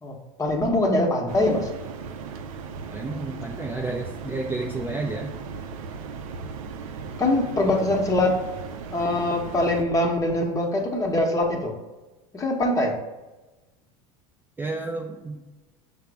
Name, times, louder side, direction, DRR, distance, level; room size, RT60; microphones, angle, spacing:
voice 1, 0.0-1.7 7.2-8.4 8.9-11.8 12.3-13.0, left 1 dB, 20° left, 1 dB, 0.8 m, -23 dB
sound 1, 1.3-9.8, right 5 dB, 80° right, 0.4 m, -37 dB
voice 2, 2.9-5.3 14.6-15.4, right 2 dB, 10° right, 0 dB, 0.4 m, -31 dB
5.6 x 2.0 x 4.6 m, 1.1 s
supercardioid pair, 100°, 17 cm